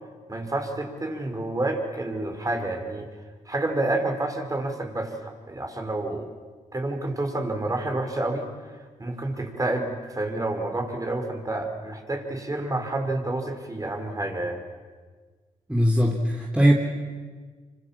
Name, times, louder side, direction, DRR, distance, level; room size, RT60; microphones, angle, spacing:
voice 1, 0.3-3.1 3.5-6.3 6.7-8.5 9.0-14.6, right 2 dB, 25° right, 4 dB, 5.3 m, -29 dB
voice 2, 15.7-16.7, equal, 5° right, -1 dB, 3.5 m, -20 dB
26.5 x 25.5 x 7.6 m, 1.5 s
supercardioid pair, 60°, 15 cm